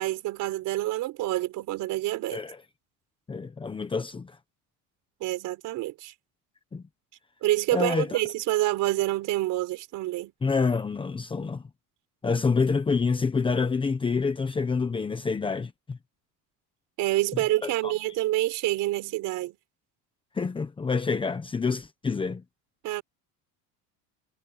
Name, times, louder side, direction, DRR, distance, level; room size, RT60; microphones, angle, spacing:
voice 1, 0.0-2.4 5.2-6.1 7.4-10.3 17.0-19.6 22.8-23.0, right 16 dB, 55° right, 4.9 m, -27 dB
voice 2, 3.3-4.3 6.7-6.8 7.7-8.1 10.4-11.6 12.2-16.0 17.6-17.9 20.4-22.4, left 4 dB, 15° left, 1.1 m, -27 dB
cardioid pair, 165°, 37 cm